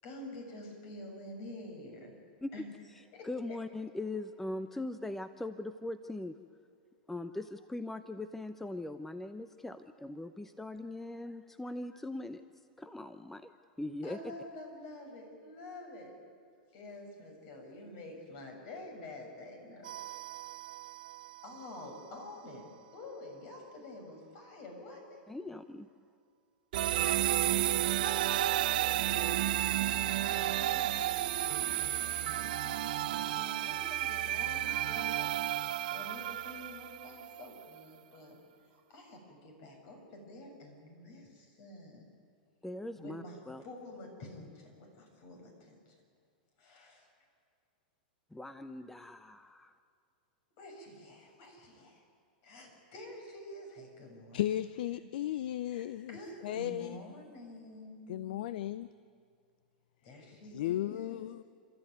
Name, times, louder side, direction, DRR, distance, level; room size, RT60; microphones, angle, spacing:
voice 1, 0.0-2.2 2.5-2.6 3.1-3.6 14.0-16.2 16.7-20.0 21.4-25.2 26.9-31.1 31.7-35.3 35.9-38.4 38.7-42.1 43.0-46.0 46.6-47.1 50.6-52.0 52.4-54.6 54.9-55.0 55.7-58.8 60.0-61.2, left 1 dB, 50° left, 3 dB, 6.9 m, -48 dB
voice 2, 3.2-6.4 7.1-12.4 12.8-13.5 13.8-14.2 25.3-25.9 42.6-43.6 48.3-49.7, left 2 dB, 5° left, 11 dB, 0.7 m, -40 dB
sound 1, 19.8-21.6 26.7-37.6, right 13 dB, 70° right, 0.7 m, -32 dB
voice 3, 54.3-56.2 56.4-57.0 58.1-58.9 60.5-61.4, left 13 dB, 70° left, 16 dB, 0.5 m, -35 dB
30.0 x 13.5 x 9.4 m, 2.2 s
hypercardioid pair, 120°, 5 cm